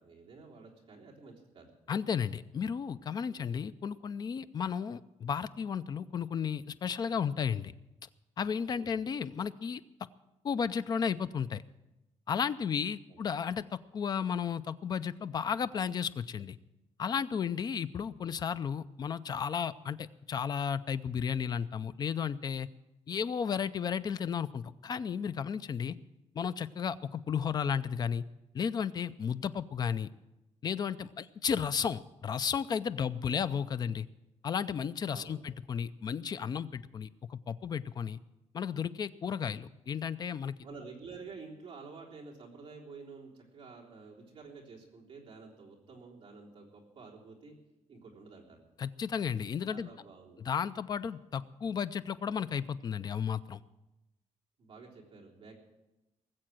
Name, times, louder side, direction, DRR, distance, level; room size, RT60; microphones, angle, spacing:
voice 1, 0.0-1.7 3.2-3.5 8.7-9.0 13.1-13.2 35.1-35.4 40.6-47.6 47.9-48.6 49.7-50.5 54.6-55.5, right 4 dB, 40° right, -2 dB, 3.4 m, -50 dB
voice 2, 1.9-7.7 8.4-9.8 10.4-11.6 12.3-16.6 17.0-22.7 23.1-26.0 26.3-28.2 28.5-30.1 30.6-34.1 34.4-38.2 38.5-40.5 48.8-49.9 50.4-53.6, left 7 dB, 35° left, 14 dB, 0.4 m, -33 dB
19.0 x 7.7 x 7.6 m, 0.96 s
cardioid pair, 175°, 12 cm